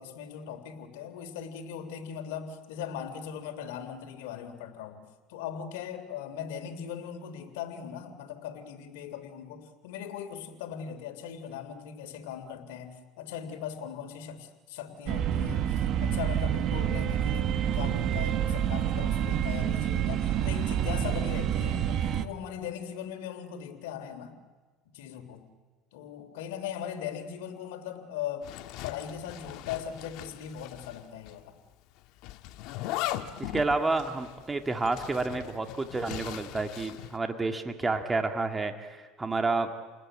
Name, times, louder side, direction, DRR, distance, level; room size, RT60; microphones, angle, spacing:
voice 1, 0.0-5.0 5.3-24.3 24.9-25.5 25.9-28.5 28.8-31.6, left 8 dB, 85° left, 6 dB, 3.3 m, -39 dB
sound 1, 15.1-22.3, right 10 dB, 50° right, 1.5 m, -28 dB
Zipper (clothing), 28.4-31.0 31.3-31.4 32.2-37.2, left 14 dB, 70° left, 1.5 m, -39 dB
voice 2, 33.4-39.7, right 3 dB, 15° right, 6 dB, 2.1 m, -30 dB
30.0 x 20.0 x 9.0 m, 1.4 s
supercardioid pair, 105°, 0 cm